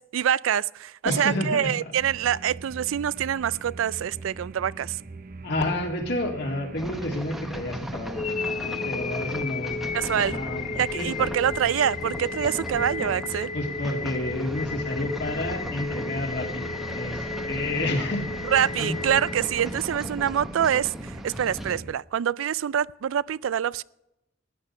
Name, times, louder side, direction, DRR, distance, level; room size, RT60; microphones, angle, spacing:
voice 1, 0.0-5.0 9.9-10.4 10.7-13.5 18.4-23.8, right 9 dB, 85° right, 0.4 m, -25 dB
voice 2, 1.0-1.7 5.4-11.3 13.5-18.3 18.8-19.0, left 1 dB, 55° left, 2.5 m, -30 dB
sound 1, 2.0-21.9, right 3 dB, 45° right, 0.7 m, -42 dB
sound 2, 6.8-21.8, equal, ahead, 0.8 m, -38 dB
sound 3, 8.1-20.2, left 4 dB, 35° left, 0.5 m, -34 dB
15.5 x 10.5 x 5.5 m
head